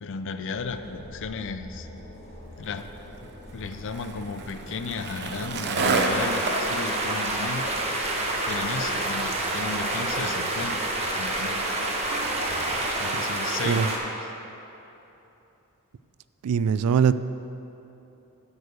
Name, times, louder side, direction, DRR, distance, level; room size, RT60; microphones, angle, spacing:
voice 1, 0.0-1.9 2.6-2.9 3.2-7.7 8.4-10.8 11.1-11.6 13.0-14.1, left 4 dB, 60° left, 9 dB, 0.5 m, -34 dB
sound 1, 0.5-13.1, equal, 30° left, 1.5 m, -44 dB
Skateboard, 2.6-13.2, right 3 dB, 50° right, 0.7 m, -33 dB
sound 2, 5.7-14.0, right 2 dB, 30° right, 1.1 m, -28 dB
voice 2, 16.4-17.1, right 7 dB, 80° right, 14 dB, 0.3 m, -21 dB
10.5 x 4.8 x 6.7 m, 3.0 s
head